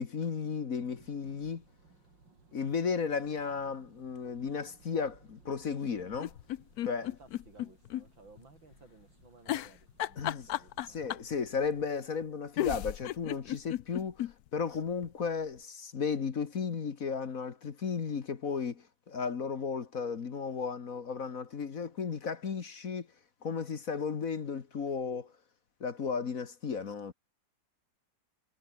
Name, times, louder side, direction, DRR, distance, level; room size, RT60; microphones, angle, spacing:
voice 1, 0.0-1.6 2.5-6.3 6.9-7.1 10.2-10.5 10.9-14.2 14.5-23.1 23.4-25.3 25.8-27.1, left 5 dB, 50° left, 1.8 m, -34 dB
Thunder, 0.7-12.1, right 3 dB, 70° right, 5.0 m, -62 dB
sound 1, 6.1-8.0 8.4-8.5 9.5-11.3 12.2-12.3 12.6-14.3 14.7-14.8 15.0-15.1, left 13 dB, 65° left, 1.0 m, -34 dB
voice 2, 7.0-11.0, right 3 dB, 85° right, 5.8 m, -58 dB
omnidirectional pair, 2.1 m